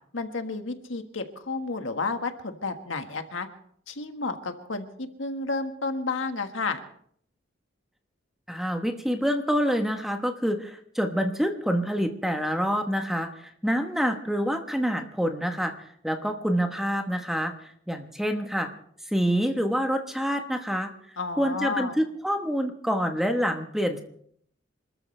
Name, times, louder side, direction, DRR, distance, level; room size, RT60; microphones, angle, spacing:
voice 1, 0.1-3.5 3.9-6.8 21.2-22.0, left 3 dB, 80° left, 6 dB, 1.6 m, -31 dB
voice 2, 8.5-18.7 19.1-20.9 21.4-24.0, equal, ahead, 5 dB, 1.1 m, -27 dB
26.5 x 13.5 x 3.3 m, 0.64 s
head